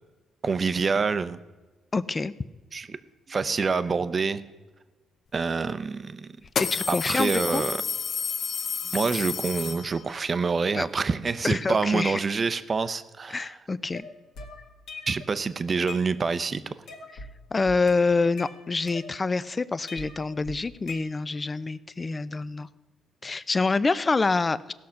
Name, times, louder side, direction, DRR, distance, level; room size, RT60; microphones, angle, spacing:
voice 1, 0.4-1.4 2.7-3.0 3.3-4.4 5.3-6.3 6.9-7.8 8.9-13.5 15.1-16.6, right 4 dB, 35° right, 13 dB, 0.6 m, -26 dB
voice 2, 1.9-2.3 6.6-7.6 10.7-10.9 11.4-12.2 13.3-14.1 17.5-22.7 23.2-24.7, left 3 dB, 25° left, 17 dB, 0.5 m, -26 dB
sound 1, 5.4-5.5 6.4-10.2, left 6 dB, 55° left, 0.8 m, -31 dB
sound 2, 13.9-15.3 15.7-16.5 16.9-17.3 17.7-19.4 19.9-21.5, left 3 dB, 80° left, 1.7 m, -42 dB
16.5 x 6.4 x 5.7 m, 1.2 s
cardioid pair, 90°, 0 cm